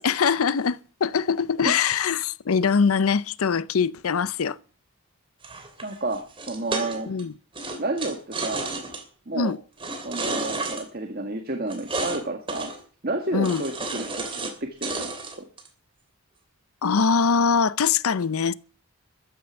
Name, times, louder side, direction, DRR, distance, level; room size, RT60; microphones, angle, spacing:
voice 1, 0.0-4.6 7.1-7.3 9.3-9.6 13.3-13.6 16.8-18.5, left 6 dB, 75° left, 0.6 m, -23 dB
sound 1, 5.4-7.2 7.5-9.0 9.8-10.8 11.7-12.2 12.5-12.8 13.4-14.5 14.8-15.7, right 3 dB, 25° right, 2.9 m, -31 dB
voice 2, 5.8-7.1 7.8-8.7 9.3-9.5 10.0-12.7 13.0-15.4, right 2 dB, 40° right, 1.6 m, -31 dB
14.0 x 9.4 x 6.9 m
head